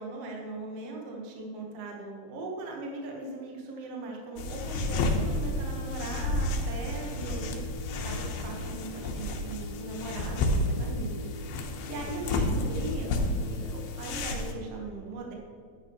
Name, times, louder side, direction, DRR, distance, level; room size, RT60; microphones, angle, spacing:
voice 1, 0.0-7.6 8.0-11.3 11.8-15.3, right 2 dB, 70° right, 0 dB, 1.5 m, -39 dB
sound 1, 4.4-14.5, left 2 dB, 75° left, 2.7 m, -31 dB
10.5 x 9.2 x 3.0 m, 2.2 s
omnidirectional pair, 4.8 m